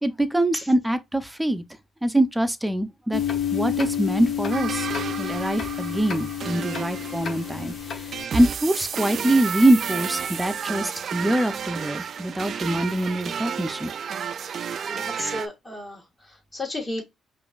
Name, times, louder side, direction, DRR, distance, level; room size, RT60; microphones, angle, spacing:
voice 1, 0.0-1.6 2.0-3.2 3.5-4.9 5.2-13.9, right 1 dB, 5° right, 0.6 m, -24 dB
sound 1, 3.1-8.2, left 9 dB, 55° left, 0.9 m, -29 dB
sound 2, 4.5-15.5, right 7 dB, 55° right, 0.3 m, -32 dB
voice 2, 14.8-17.0, left 1 dB, 30° left, 1.5 m, -33 dB
5.1 x 2.6 x 2.4 m
cardioid pair, 90°, 0 cm